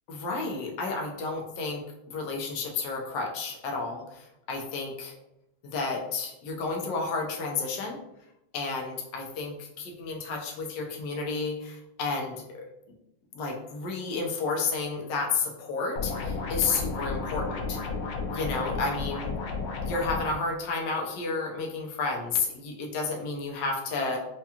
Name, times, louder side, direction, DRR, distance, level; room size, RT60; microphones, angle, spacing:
voice 1, 0.1-5.1 5.6-8.0 8.5-12.6 13.3-17.8 18.3-19.3 19.8-24.2, left 4 dB, 70° left, 0 dB, 1.2 m, -31 dB
sound 1, 16.0-20.3, left 4 dB, 85° left, 1.5 m, -32 dB
4.7 x 2.3 x 2.8 m, 0.85 s
omnidirectional pair, 2.3 m